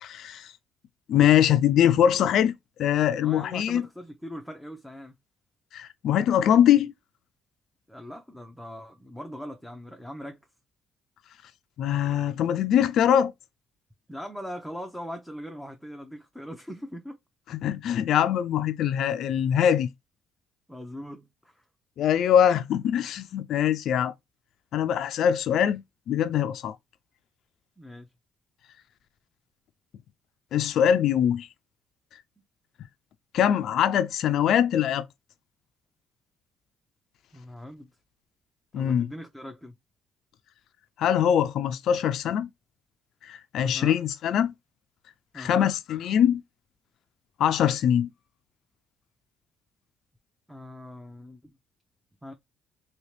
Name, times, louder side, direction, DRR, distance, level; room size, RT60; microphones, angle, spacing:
voice 1, 0.0-0.5 1.1-2.5 2.8-3.9 5.7-6.9 11.8-13.3 17.5-19.9 22.0-24.1 24.7-25.8 26.1-26.8 30.5-31.5 33.3-35.0 38.7-39.1 41.0-42.5 43.2-44.5 45.3-46.4 47.4-48.1, left 9 dB, 70° left, 0.4 m, -23 dB
voice 2, 3.2-5.1 7.9-10.4 14.1-17.2 20.7-21.6 27.8-28.1 37.3-37.9 38.7-39.7 43.6-44.0 45.3-45.8 50.5-51.5 52.2-52.3, equal, ahead, 0.7 m, -40 dB
3.0 x 2.9 x 3.1 m
cardioid pair, 80°, 0 cm